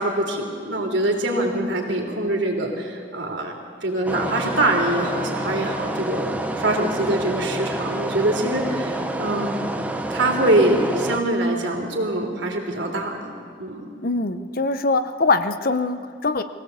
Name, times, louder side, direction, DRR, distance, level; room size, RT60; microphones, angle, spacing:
voice 1, 0.0-3.5 3.8-9.6 10.1-13.9, right 1 dB, 70° right, 1 dB, 3.5 m, -24 dB
sound 1, 4.1-11.2, right 1 dB, 10° right, 1.0 m, -28 dB
voice 2, 14.0-16.4, left 3 dB, 50° left, 11 dB, 0.9 m, -22 dB
22.0 x 17.0 x 8.3 m, 2.3 s
head